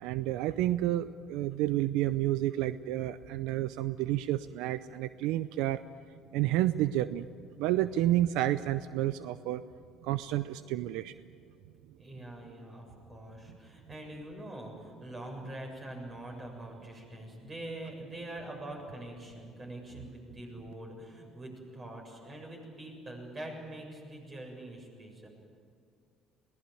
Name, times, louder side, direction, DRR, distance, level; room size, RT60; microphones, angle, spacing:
voice 1, 0.0-5.8 6.3-7.3 7.6-9.6 10.0-11.1, right 14 dB, 85° right, 14 dB, 0.5 m, -30 dB
voice 2, 12.0-25.3, right 1 dB, 30° right, 2 dB, 7.3 m, -44 dB
21.5 x 18.0 x 9.2 m, 2.3 s
supercardioid pair, 95°, 0 cm